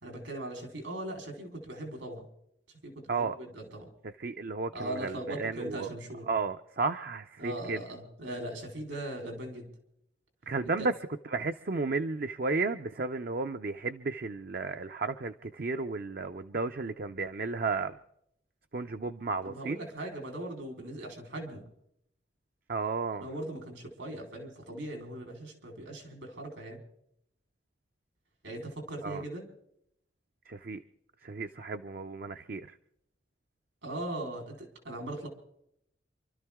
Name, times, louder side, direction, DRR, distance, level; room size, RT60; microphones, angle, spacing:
voice 1, 0.0-2.3 2.8-3.9 4.7-6.3 7.4-9.7 10.6-10.9 19.4-21.7 23.2-26.8 28.4-29.5 33.8-35.3, right 1 dB, 80° right, 2 dB, 4.0 m, -39 dB
voice 2, 4.2-5.9 6.3-7.8 10.5-10.9 11.3-17.9 18.7-19.8 22.7-23.3 29.0-29.2 30.5-30.8 31.2-32.8, right 3 dB, 50° right, 7 dB, 0.5 m, -33 dB
28.0 x 13.0 x 3.6 m, 0.74 s
head